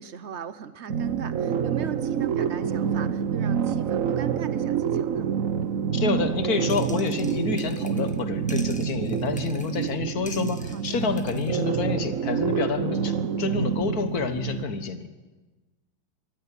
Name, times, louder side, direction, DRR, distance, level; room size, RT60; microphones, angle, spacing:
voice 1, 0.0-5.3 10.7-11.0, right 8 dB, 75° right, 12 dB, 0.6 m, -38 dB
sound 1, 0.9-14.6, right 8 dB, 55° right, 0.9 m, -27 dB
voice 2, 5.9-15.1, left 5 dB, 50° left, 9 dB, 1.7 m, -28 dB
sound 2, 6.7-8.2 8.5-9.9 10.3-11.6, left 1 dB, 5° left, 0.9 m, -46 dB
23.0 x 13.5 x 10.0 m, 1.2 s
omnidirectional pair, 2.4 m